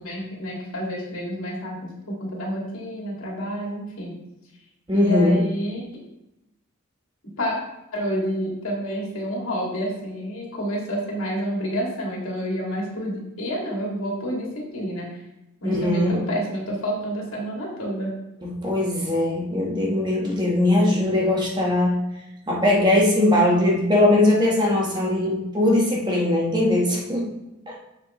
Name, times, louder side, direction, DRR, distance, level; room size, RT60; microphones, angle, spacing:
voice 1, 0.0-4.1 4.9-5.8 7.4-7.6 7.9-15.1 15.6-18.2, equal, 80° left, -3 dB, 2.4 m, -29 dB
voice 2, 4.9-5.4 15.6-16.2 18.4-22.0 22.5-27.3 27.7-27.8, left 1 dB, 20° right, -3 dB, 1.3 m, -20 dB
7.3 x 6.2 x 3.1 m, 0.92 s
head